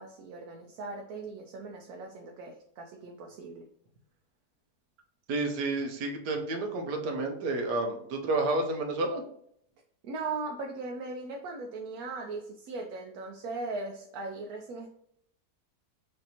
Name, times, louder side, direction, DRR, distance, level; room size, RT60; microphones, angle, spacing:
voice 1, 0.0-3.6 10.0-14.9, right 3 dB, 70° right, 1 dB, 1.0 m, -39 dB
voice 2, 5.3-9.2, right 2 dB, 90° right, 3 dB, 1.3 m, -30 dB
5.2 x 2.8 x 2.8 m, 0.72 s
omnidirectional pair, 1.7 m